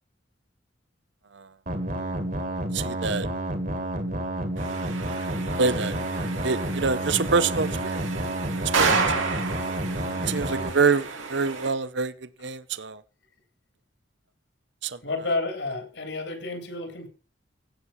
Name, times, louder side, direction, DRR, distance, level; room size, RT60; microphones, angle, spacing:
sound 1, 1.7-10.7, right 1 dB, 45° right, 2.2 m, -30 dB
voice 1, 2.7-3.3 5.6-5.9 6.4-8.0 8.8-9.0 10.3-12.1 12.4-13.0 14.8-15.0, right 4 dB, 65° right, 0.8 m, -25 dB
sound 2, 4.6-11.7, right 4 dB, 85° right, 3.0 m, -31 dB
voice 2, 10.1-10.7 15.0-17.1, left 3 dB, 70° left, 3.8 m, -31 dB
17.0 x 6.5 x 5.7 m
head